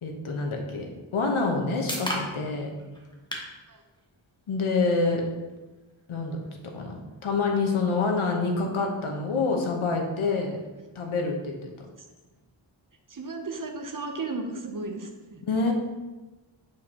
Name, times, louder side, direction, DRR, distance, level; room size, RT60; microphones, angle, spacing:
voice 1, 0.0-2.7 4.5-5.3 6.1-6.4 6.7-6.9 7.2-10.5 10.9-11.7 15.5-15.7, left 3 dB, 85° left, 1 dB, 1.1 m, -27 dB
sound 1, 1.1-15.0, left 1 dB, 10° left, 1.1 m, -44 dB
voice 2, 13.1-15.4, right 3 dB, 40° right, 4 dB, 0.8 m, -35 dB
8.1 x 4.7 x 2.9 m, 1.2 s
wide cardioid pair, 95°, 48 cm